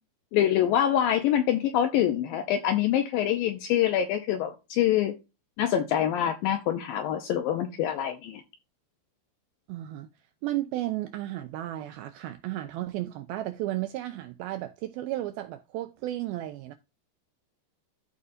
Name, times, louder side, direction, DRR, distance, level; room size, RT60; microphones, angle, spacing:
voice 1, 0.3-5.1 5.6-8.4, left 10 dB, 80° left, 2.1 m, -25 dB
voice 2, 9.7-10.1 10.4-16.7, right 15 dB, 90° right, 2.1 m, -33 dB
13.5 x 5.0 x 2.6 m
omnidirectional pair, 4.9 m